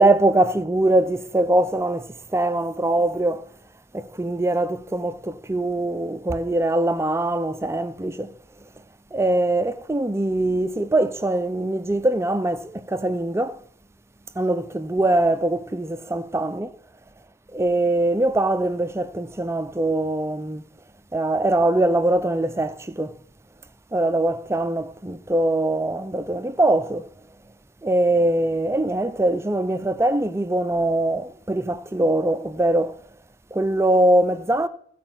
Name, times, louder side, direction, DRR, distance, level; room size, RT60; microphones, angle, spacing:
voice 1, 0.0-3.4 3.9-8.3 9.1-13.6 14.4-16.7 17.5-20.6 21.1-23.2 23.9-27.1 27.8-33.0 33.5-34.7, right 1 dB, 15° right, 0.5 m, -22 dB
14.5 x 4.9 x 8.9 m
head